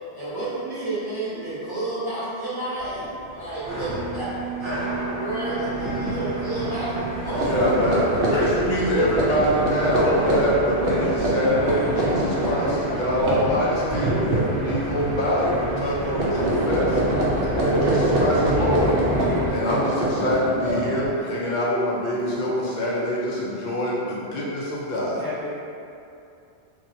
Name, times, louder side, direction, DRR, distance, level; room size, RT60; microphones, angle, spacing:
voice 1, 0.1-4.3 4.6-7.5 8.3-8.4, right 2 dB, 25° right, -12 dB, 0.8 m, -31 dB
sound 1, 2.8-19.5, right 2 dB, 85° right, 1.0 m, -30 dB
sound 2, 5.8-6.2 6.5-6.7 7.2-15.3 15.5-15.9 16.1-21.2, right 1 dB, 65° right, 0.7 m, -25 dB
voice 2, 7.4-16.9 17.6-25.2, equal, 55° left, -6 dB, 0.6 m, -24 dB
voice 3, 16.0-16.7 17.0-17.5 25.2-25.5, left 2 dB, 5° left, -10 dB, 0.4 m, -35 dB
2.8 x 2.7 x 2.5 m, 2.6 s
omnidirectional pair, 1.1 m